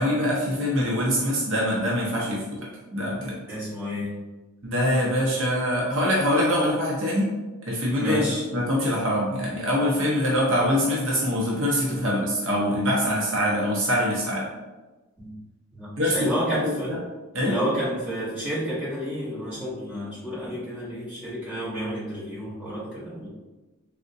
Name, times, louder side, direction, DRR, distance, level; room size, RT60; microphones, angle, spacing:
voice 1, 0.0-2.4 2.9-3.4 4.6-7.3 7.7-14.5 16.0-17.0 17.3-17.6, equal, 60° right, -4 dB, 0.6 m, -24 dB
voice 2, 3.5-4.1 8.0-8.4 15.2-15.4 15.7-16.9 17.4-23.3, equal, 10° right, -11 dB, 1.1 m, -30 dB
3.5 x 2.1 x 2.6 m, 1.2 s
head